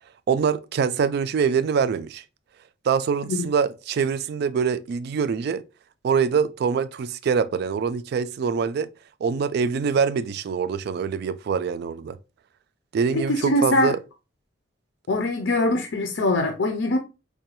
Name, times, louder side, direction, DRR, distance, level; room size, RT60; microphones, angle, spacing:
voice 1, 0.3-2.2 2.8-5.6 6.0-8.9 9.2-12.2 12.9-14.0, right 6 dB, 55° right, 0.3 m, -24 dB
voice 2, 13.1-13.9 15.1-17.0, left 2 dB, 70° left, 0.5 m, -23 dB
4.7 x 2.2 x 2.8 m
head